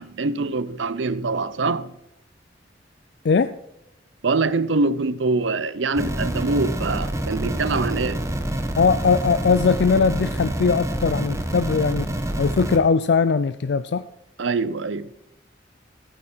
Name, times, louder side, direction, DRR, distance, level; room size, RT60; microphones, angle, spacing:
voice 1, 0.0-1.9 4.2-8.2 14.4-15.1, right 3 dB, 85° right, 0.7 m, -24 dB
voice 2, 3.2-3.5 8.8-12.1 12.4-14.0, left 5 dB, 65° left, 0.4 m, -20 dB
sound 1, 5.9-12.8, right 1 dB, 15° right, 1.2 m, -27 dB
15.0 x 9.1 x 4.4 m
head